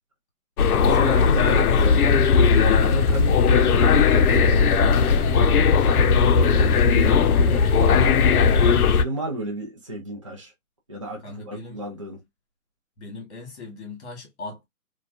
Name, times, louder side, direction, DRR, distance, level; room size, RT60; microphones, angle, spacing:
sound 1, 0.6-9.0, left 5 dB, 75° left, 0.5 m, -18 dB
voice 1, 0.8-5.5 5.9-8.2 8.9-10.5 10.9-12.2, right 1 dB, 25° right, 0.4 m, -33 dB
voice 2, 11.2-11.8 13.0-14.7, left 3 dB, 45° left, 1.3 m, -39 dB
2.4 x 2.2 x 2.3 m
hypercardioid pair, 155°, 45 cm